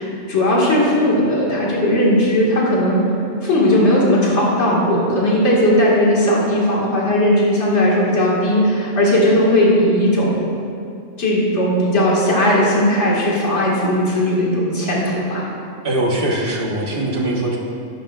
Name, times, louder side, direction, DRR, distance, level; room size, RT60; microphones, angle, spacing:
voice 1, 0.0-3.0 3.4-10.3 11.2-15.4, left 1 dB, 70° left, -5 dB, 2.1 m, -17 dB
voice 2, 15.8-17.6, right 1 dB, 50° right, -2 dB, 1.4 m, -21 dB
11.0 x 10.5 x 2.4 m, 2.5 s
omnidirectional pair, 1.2 m